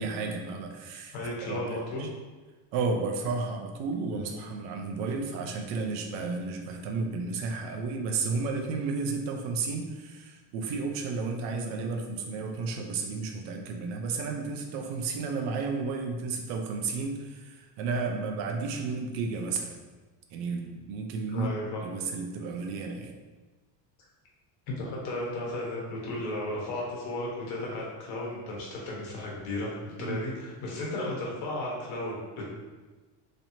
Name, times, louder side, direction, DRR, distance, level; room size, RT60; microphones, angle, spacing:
voice 1, 0.0-1.2 1.4-2.1 2.7-19.7 20.3-21.5 21.8-23.1 30.0-30.3, right 4 dB, 75° right, 3 dB, 0.7 m, -32 dB
voice 2, 1.1-2.1 4.1-4.3 21.3-21.8 24.7-32.5, left 1 dB, 75° left, -4 dB, 1.2 m, -34 dB
3.2 x 2.7 x 2.7 m, 1.3 s
supercardioid pair, 90°, 50 cm